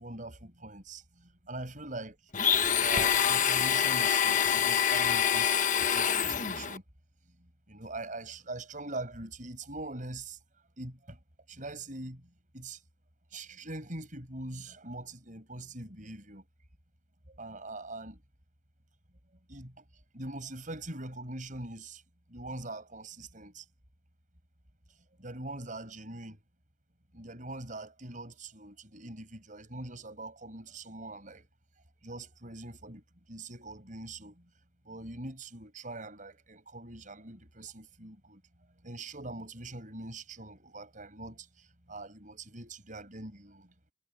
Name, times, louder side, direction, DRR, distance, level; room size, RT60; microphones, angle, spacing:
voice 1, 0.0-2.2 2.8-6.8 7.4-10.4 10.8-11.2 11.5-12.8 13.3-16.4 17.3-18.2 19.5-19.8 20.1-22.0 22.3-23.6 25.2-26.4 27.1-31.5 32.0-33.0 33.3-34.5 34.8-38.4 38.8-43.7, right 2 dB, 45° right, 7.4 m, -43 dB
Domestic sounds home sounds, 2.3-6.8, left 8 dB, 45° left, 1.4 m, -26 dB
head